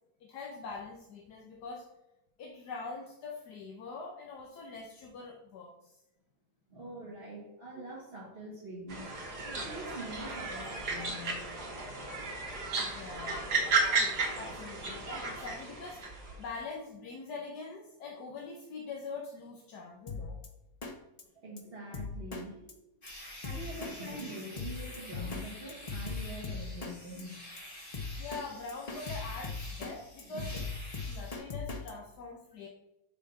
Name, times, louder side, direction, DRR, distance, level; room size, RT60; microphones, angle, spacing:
voice 1, 0.2-1.8 2.4-6.0 12.8-13.4 14.4-20.4 28.2-30.7 31.0-32.7, left 4 dB, 80° left, -1 dB, 1.5 m, -43 dB
voice 2, 6.7-9.1 9.4-11.5 21.3-22.8 23.4-27.4 30.2-30.6, right 1 dB, 40° right, -7 dB, 1.7 m, -44 dB
sound 1, 8.9-16.4, right 3 dB, 75° right, 2.0 m, -34 dB
Drum kit, 20.1-20.5 20.8-20.9 21.2-21.3 21.6-21.7 21.9-22.4 22.7-22.8 23.1-23.2 23.4-23.9 24.2-24.3 24.6-25.4 25.7-26.9 27.2-27.3 27.6-27.7 27.9-28.4 28.7-29.9 30.2-31.9, left 4 dB, 55° left, 0.4 m, -38 dB
sound 2, 23.0-31.4, left 1 dB, 30° left, 2.6 m, -48 dB
6.5 x 4.3 x 5.4 m, 0.91 s
omnidirectional pair, 1.7 m